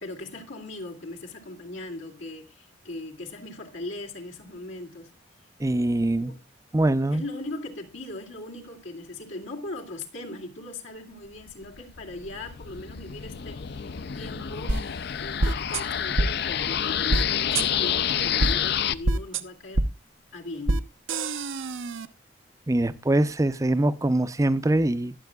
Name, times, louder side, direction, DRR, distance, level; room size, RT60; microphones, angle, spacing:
voice 1, 0.0-5.1 5.8-6.4 7.1-14.8 15.1-19.8 20.3-20.9, left 2 dB, 90° left, 2.3 m, -39 dB
voice 2, 5.6-6.3 6.7-7.2 22.7-25.1, right 1 dB, 15° right, 0.5 m, -23 dB
sound 1, 11.6-18.9, left 9 dB, 55° left, 0.5 m, -28 dB
sound 2, 14.7-14.8 15.4-15.8 16.2-16.3 17.1-17.2 17.5-17.7 18.4-18.5 19.0-19.4 19.7-19.9 20.7-20.8 21.1-22.1, right 2 dB, 85° right, 0.8 m, -24 dB
21.0 x 7.6 x 2.3 m
head